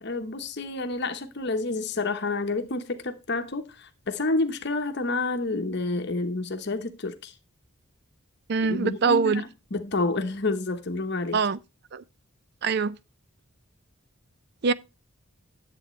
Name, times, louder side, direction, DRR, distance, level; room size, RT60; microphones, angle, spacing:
voice 1, 0.0-7.3 8.6-11.4, left 2 dB, 50° left, 1.0 m, -29 dB
voice 2, 8.5-9.4 11.3-11.6 11.9-12.0 12.6-13.0 14.6-14.7, right 4 dB, 50° right, 0.4 m, -23 dB
11.0 x 7.8 x 3.1 m
head